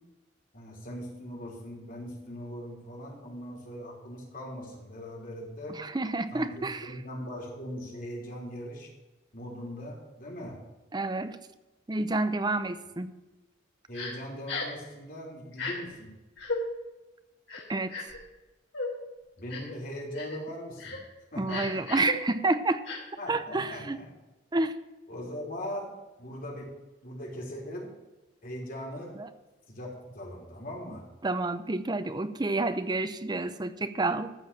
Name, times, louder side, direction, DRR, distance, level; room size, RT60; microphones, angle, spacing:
voice 1, 0.5-5.8 6.3-8.9 9.3-10.6 13.9-16.1 19.4-21.0 21.3-21.8 23.2-24.1 25.1-25.9 26.2-26.7 27.0-27.9 28.4-29.1 29.7-31.1, equal, 50° left, -2 dB, 3.5 m, -40 dB
voice 2, 5.7-6.9 10.9-11.4 11.9-13.1 17.7-18.0 21.4-22.8 23.3-24.0 24.5-24.8 29.2-29.3 31.2-34.3, right 2 dB, 25° right, 11 dB, 0.7 m, -29 dB
Crying sobbing, 13.9-14.1 14.5-14.8 15.5-15.7 16.4-16.6 17.5-18.2 18.7-18.9 19.5-19.7 20.1-20.4 20.8-21.0 21.5-22.1 22.8-23.0, left 4 dB, 80° left, 3.2 m, -35 dB
14.0 x 4.8 x 8.8 m, 1.1 s
head